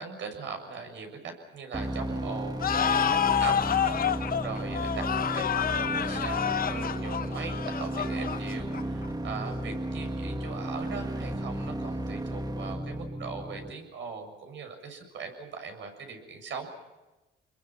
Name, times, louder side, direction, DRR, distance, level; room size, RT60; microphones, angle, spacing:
voice 1, 0.0-3.0 3.4-16.7, right 5 dB, 70° right, 5 dB, 7.2 m, -40 dB
sound 1, 1.7-13.7, right 1 dB, 20° right, 1.8 m, -34 dB
sound 2, 2.6-9.1, left 8 dB, 45° left, 0.8 m, -28 dB
28.5 x 22.0 x 6.1 m, 1.1 s
cardioid pair, 90°, 20 cm